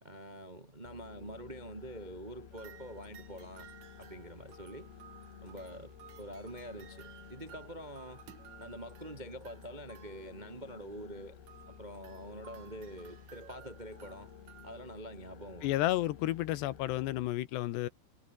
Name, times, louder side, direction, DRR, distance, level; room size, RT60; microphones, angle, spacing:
voice 1, 0.0-3.7 4.0-4.9 5.4-8.2 8.6-11.4 11.7-14.3 14.6-15.8, right 1 dB, 85° right, 0.4 m, -46 dB
sound 1, 0.8-17.3, left 8 dB, 60° left, 4.8 m, -53 dB
sound 2, 2.5-10.8 11.5-14.8, right 10 dB, 55° right, 2.2 m, -57 dB
voice 2, 15.6-17.9, left 15 dB, 75° left, 3.0 m, -31 dB
omnidirectional pair, 5.4 m